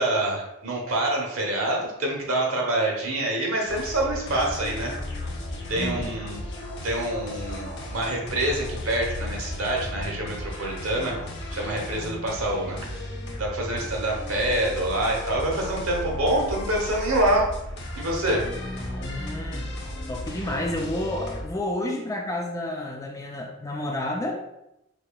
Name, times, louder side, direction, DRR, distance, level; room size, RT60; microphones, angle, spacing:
voice 1, 0.0-4.9 5.7-6.4 6.8-11.2 11.5-13.1 13.4-17.5 17.9-18.5, right 1 dB, 70° right, -1 dB, 0.9 m, -26 dB
sound 1, 3.7-21.4, left 1 dB, 55° left, 0.7 m, -35 dB
voice 2, 5.7-6.1 18.4-19.7 20.1-24.4, left 1 dB, 15° left, 1 dB, 0.3 m, -31 dB
4.6 x 2.7 x 2.2 m, 0.88 s
head